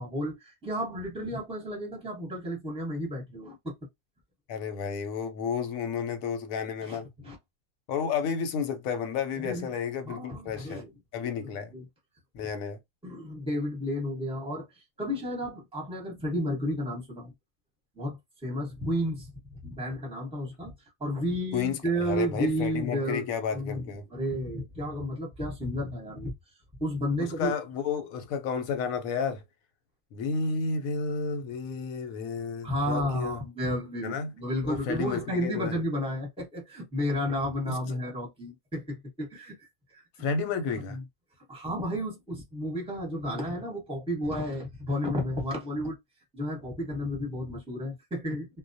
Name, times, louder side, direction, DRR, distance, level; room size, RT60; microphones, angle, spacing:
voice 1, 0.0-3.8 6.8-7.4 9.4-9.7 10.0-10.9 11.7-11.8 13.0-14.6 15.0-17.3 18.0-18.2 18.4-19.3 19.6-20.7 21.0-23.2 23.5-26.3 26.8-27.5 32.6-39.7 39.9-40.0 40.9-41.0 41.5-46.0 46.3-48.5, equal, 5° right, 0.9 m, -32 dB
voice 2, 4.5-7.1 7.9-10.8 11.1-11.7 12.3-12.8 21.5-24.1 27.2-29.4 30.1-33.4 34.0-34.3 34.6-35.8 37.7-37.8 40.2-41.0, left 6 dB, 90° left, 1.0 m, -31 dB
2.3 x 2.1 x 2.6 m
omnidirectional pair, 1.4 m